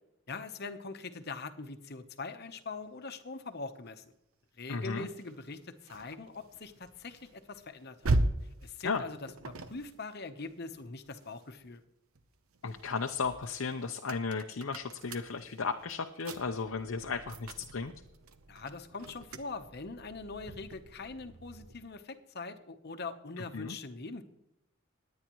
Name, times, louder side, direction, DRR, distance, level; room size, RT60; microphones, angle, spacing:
voice 1, 0.3-4.1 4.6-8.1 8.6-9.2 9.5-11.8 18.5-24.2, left 3 dB, 50° left, 8 dB, 1.0 m, -42 dB
voice 2, 4.7-5.1 8.8-9.0 12.6-17.9 23.5-23.8, left 5 dB, 75° left, 5 dB, 0.7 m, -35 dB
sound 1, 5.2-11.7 12.1-21.9, right 2 dB, 90° right, 0.9 m, -39 dB
20.0 x 9.4 x 3.1 m, 0.84 s
head